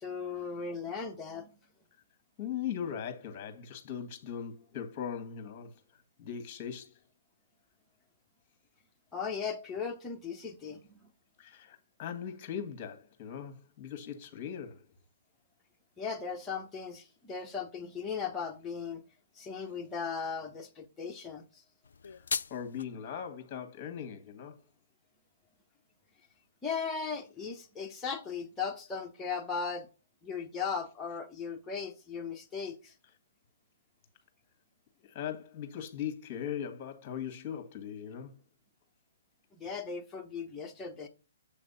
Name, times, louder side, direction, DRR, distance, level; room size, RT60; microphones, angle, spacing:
voice 1, 0.0-1.5 9.1-11.0 16.0-19.0 19.4-21.5 26.6-29.9 30.2-32.9 39.5-41.1, left 5 dB, 10° left, 0.9 m, -37 dB
voice 2, 2.4-5.7 6.2-6.9 11.4-14.8 22.0-22.2 22.5-24.6 35.0-38.3, left 8 dB, 30° left, 1.6 m, -39 dB
sound 1, 21.8-22.8, left 6 dB, 70° left, 0.3 m, -36 dB
7.2 x 3.3 x 5.6 m
hypercardioid pair, 135°, 0 cm